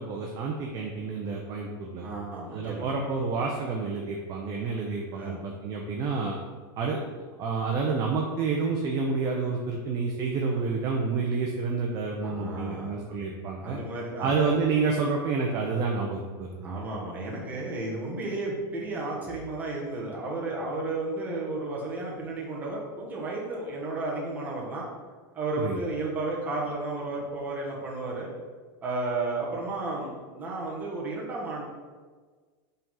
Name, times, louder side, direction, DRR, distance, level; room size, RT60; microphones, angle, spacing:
voice 1, 0.0-2.1 2.5-6.4 6.8-7.0 7.4-13.8 14.2-16.8 25.6-25.8, right 4 dB, 30° right, 0 dB, 0.6 m, -29 dB
voice 2, 2.0-2.9 5.1-5.5 12.2-13.0 13.5-14.4 16.6-24.8 25.3-28.3 28.8-31.6, right 2 dB, 15° right, -4 dB, 1.2 m, -33 dB
5.6 x 3.7 x 5.6 m, 1.5 s
supercardioid pair, 170°, 12 cm